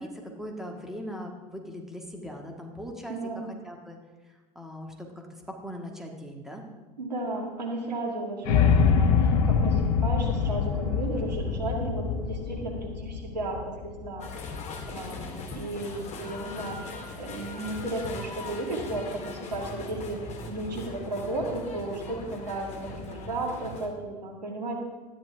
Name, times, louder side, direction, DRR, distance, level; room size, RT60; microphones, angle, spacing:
voice 1, 0.0-4.0 4.2-6.6, equal, ahead, 1 dB, 1.7 m, -40 dB
voice 2, 3.1-3.5 7.0-14.3 14.9-20.2 20.5-24.7, right 2 dB, 85° right, 0 dB, 1.9 m, -34 dB
sound 1, 8.4-14.6, left 6 dB, 65° left, 0.9 m, -24 dB
sound 2, 14.2-23.9, left 3 dB, 35° left, 2.1 m, -39 dB
12.5 x 9.9 x 3.4 m, 1.3 s
figure-of-eight pair, 75°, 21 cm